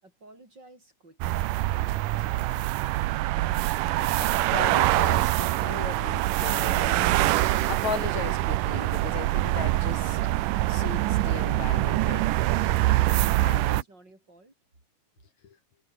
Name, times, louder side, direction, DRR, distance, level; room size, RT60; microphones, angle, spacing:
voice 1, 0.0-2.6 13.3-14.5, right 2 dB, 30° right, 7.4 m, -54 dB
sound 1, 1.2-13.8, right 16 dB, 85° right, 2.4 m, -24 dB
voice 2, 4.1-7.2 7.7-10.3 10.7-12.7 13.4-13.8 15.4-15.6, left 7 dB, 60° left, 3.3 m, -37 dB
omnidirectional pair, 3.7 m